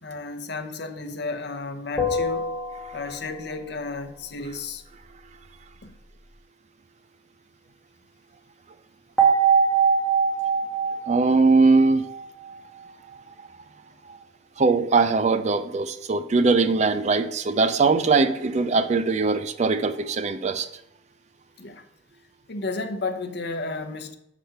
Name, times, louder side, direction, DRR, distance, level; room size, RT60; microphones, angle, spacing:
voice 1, 0.0-2.5 2.9-4.8 5.8-5.9 21.6-21.8 22.5-24.2, left 3 dB, 60° left, 0.7 m, -33 dB
sound 1, 2.0-3.5 9.2-12.5, right 5 dB, ahead, 1.4 m, -23 dB
voice 2, 11.1-12.1 13.4-13.5 14.1-14.2 14.6-20.7, right 4 dB, 35° right, 0.4 m, -21 dB
6.7 x 4.9 x 5.7 m
head